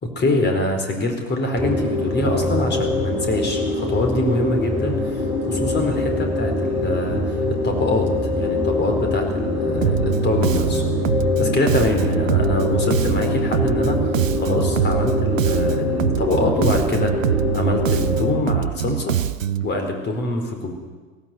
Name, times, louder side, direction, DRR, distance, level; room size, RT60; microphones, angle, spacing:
voice 1, 0.0-7.4 7.6-8.1 8.4-10.8 11.4-17.1 17.5-19.2 19.6-20.7, left 2 dB, 25° left, 4 dB, 4.4 m, -24 dB
sound 1, 1.5-18.3, left 1 dB, 5° right, 7.5 m, -24 dB
Bass guitar, 9.8-19.7, right 10 dB, 80° right, 0.7 m, -24 dB
17.5 x 17.0 x 9.3 m, 1.4 s
figure-of-eight pair, 80°, 39 cm